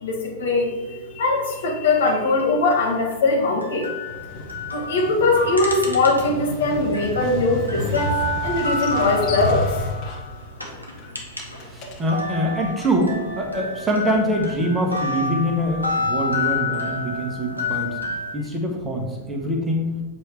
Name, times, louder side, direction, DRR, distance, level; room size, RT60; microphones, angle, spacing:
voice 1, 0.0-3.9 4.7-8.1 8.4-9.7, left 3 dB, 65° left, -1 dB, 1.4 m, -21 dB
sound 1, 2.0-6.5 6.8-11.7 12.0-18.3, left 2 dB, 90° left, 1.0 m, -29 dB
Motorcycle, 4.1-12.4, left 2 dB, 40° left, 1.3 m, -32 dB
voice 2, 11.7-18.0 18.3-19.9, equal, 15° right, 1 dB, 1.2 m, -24 dB
7.7 x 3.4 x 4.5 m, 1.1 s
figure-of-eight pair, 90°, 0 cm